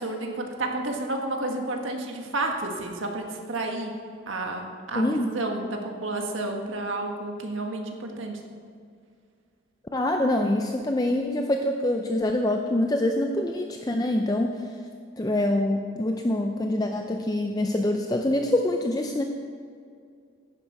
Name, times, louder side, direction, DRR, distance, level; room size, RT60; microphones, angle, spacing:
voice 1, 0.0-3.9 4.3-8.4, right 2 dB, 75° right, 2 dB, 1.5 m, -31 dB
voice 2, 4.9-5.3 9.9-14.7 15.2-19.2, left 1 dB, 20° left, 3 dB, 0.5 m, -25 dB
10.5 x 10.5 x 4.7 m, 2.2 s
head